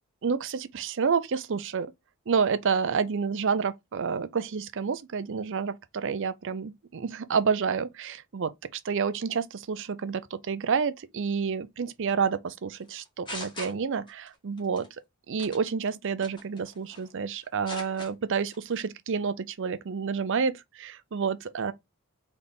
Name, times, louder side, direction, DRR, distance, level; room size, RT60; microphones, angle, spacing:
voice 1, 0.2-1.9 2.3-14.9 15.3-21.7, right 6 dB, 60° right, 0.5 m, -29 dB
sound 1, 12.9-14.3 14.6-14.9 15.4-15.7 16.2-17.1 17.4-18.1 18.5-18.8, left 1 dB, 20° left, 1.6 m, -40 dB
4.0 x 3.4 x 3.5 m
head